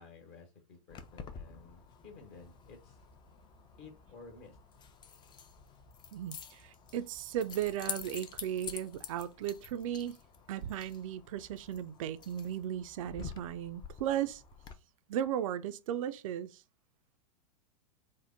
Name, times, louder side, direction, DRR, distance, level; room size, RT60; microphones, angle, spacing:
voice 1, 0.0-3.0 3.8-4.6, left 4 dB, 50° left, 1.1 m, -53 dB
Keys jangling, 0.9-14.7, left 7 dB, 25° left, 0.4 m, -48 dB
voice 2, 6.1-10.2 10.5-14.4 15.1-16.6, right 10 dB, 60° right, 0.4 m, -36 dB
3.6 x 2.1 x 3.6 m
hypercardioid pair, 95°, 19 cm